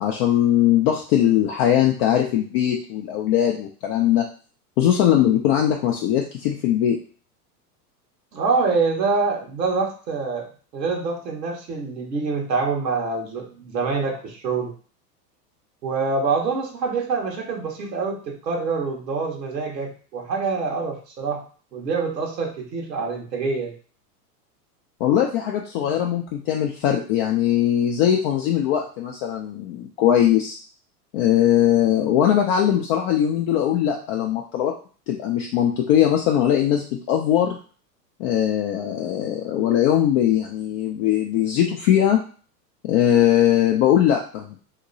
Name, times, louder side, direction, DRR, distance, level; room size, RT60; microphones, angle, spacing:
voice 1, 0.0-4.3 4.8-7.0 25.0-30.6 31.1-34.7 35.1-36.8 37.1-37.6 38.2-42.2 42.9-44.6, left 10 dB, 40° left, 1 dB, 0.4 m, -20 dB
voice 2, 8.3-10.5 10.7-14.7 15.8-21.4 21.7-23.7 25.9-26.0, right 4 dB, 85° right, 0 dB, 1.2 m, -25 dB
2.9 x 2.8 x 2.6 m, 0.40 s
hypercardioid pair, 110°, 49 cm